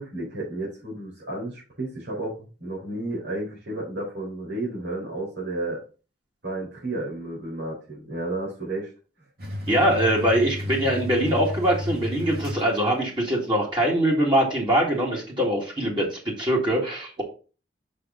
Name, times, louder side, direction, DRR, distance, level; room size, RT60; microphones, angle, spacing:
voice 1, 0.0-5.8 6.4-8.9, right 2 dB, 85° right, -6 dB, 4.2 m, -32 dB
sound 1, 9.4-13.2, left 1 dB, 60° right, 2.5 m, -32 dB
voice 2, 9.7-17.2, right 1 dB, 30° right, -3 dB, 2.1 m, -23 dB
6.4 x 6.0 x 3.8 m, 0.34 s
head